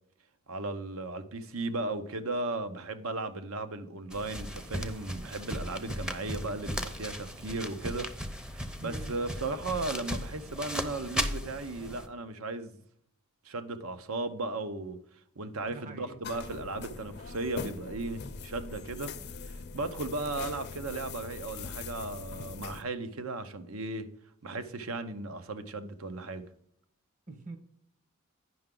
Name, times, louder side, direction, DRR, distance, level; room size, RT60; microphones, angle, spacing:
voice 1, 0.5-8.1 8.5-12.7 13.4-15.0 15.4-24.1 24.4-26.4, right 2 dB, 80° right, 0.9 m, -36 dB
sound 1, 4.1-12.1, equal, 5° right, 0.6 m, -37 dB
voice 2, 8.8-9.2 15.7-16.2 27.3-27.6, right 3 dB, 40° right, 1.1 m, -44 dB
sound 2, 16.2-22.8, left 4 dB, 50° left, 0.5 m, -42 dB
9.4 x 5.8 x 3.8 m
head